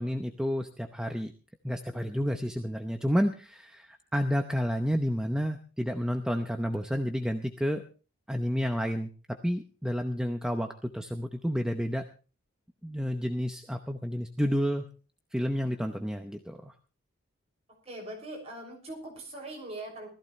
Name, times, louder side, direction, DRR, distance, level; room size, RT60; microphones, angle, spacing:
voice 1, 0.0-1.3 1.6-7.8 8.3-12.1 12.8-14.8 15.3-16.7, equal, 5° right, 4 dB, 0.7 m, -30 dB
voice 2, 17.7-20.1, right 1 dB, 30° right, 0 dB, 6.2 m, -41 dB
20.0 x 14.5 x 3.2 m, 0.37 s
head